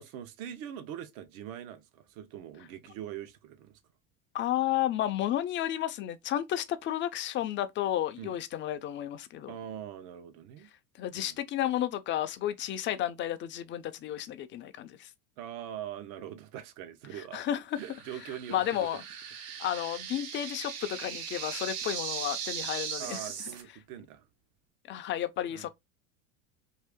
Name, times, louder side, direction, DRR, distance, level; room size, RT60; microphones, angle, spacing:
voice 1, 0.0-3.8 8.2-8.4 9.5-10.7 11.1-11.4 15.4-17.4 17.8-19.0 23.0-24.3 25.5-25.7, right 10 dB, 70° right, 0.9 m, -42 dB
voice 2, 4.3-9.5 11.0-15.1 17.3-17.8 18.5-19.0 19.6-23.2 24.9-25.7, left 12 dB, 30° left, 0.4 m, -32 dB
sound 1, 17.8-23.6, right 7 dB, 55° right, 1.3 m, -39 dB
2.7 x 2.5 x 3.4 m
supercardioid pair, 105°, 43 cm